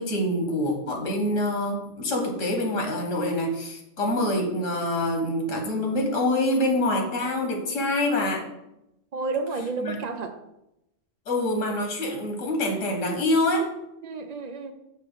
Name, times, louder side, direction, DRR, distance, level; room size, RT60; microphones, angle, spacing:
voice 1, 0.0-8.4 9.8-10.0 11.3-13.7, left 1 dB, 75° left, 2 dB, 1.5 m, -25 dB
voice 2, 9.1-10.4 14.0-14.7, right 3 dB, 65° right, 7 dB, 0.4 m, -31 dB
6.7 x 3.1 x 5.4 m, 0.87 s
omnidirectional pair, 1.3 m